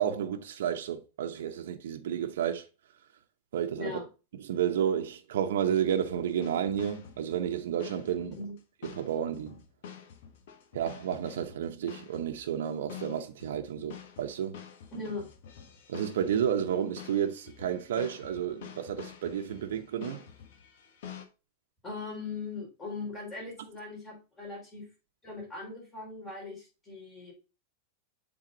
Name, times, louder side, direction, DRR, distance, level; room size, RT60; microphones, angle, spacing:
voice 1, 0.0-2.7 3.5-4.0 4.4-8.3 8.9-9.6 10.7-14.6 15.9-20.2, right 9 dB, 85° right, 0.9 m, -31 dB
sound 1, 5.9-21.3, left 8 dB, 65° left, 1.2 m, -48 dB
voice 2, 8.2-8.6 14.9-15.3 21.8-24.9 25.2-27.3, left 3 dB, 15° left, 3.8 m, -39 dB
7.6 x 3.8 x 3.8 m
supercardioid pair, 155°, 0 cm